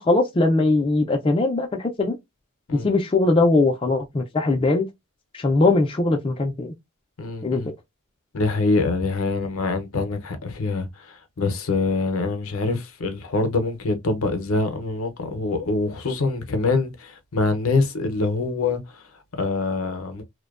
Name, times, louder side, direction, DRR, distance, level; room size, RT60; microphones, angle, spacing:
voice 1, 0.0-2.2 2.7-4.9 5.3-6.7 7.4-7.6, left 2 dB, 25° left, 0.3 m, -20 dB
voice 2, 7.2-7.7 8.3-19.0 19.3-20.2, left 3 dB, 70° left, 0.6 m, -25 dB
2.6 x 2.1 x 2.3 m
head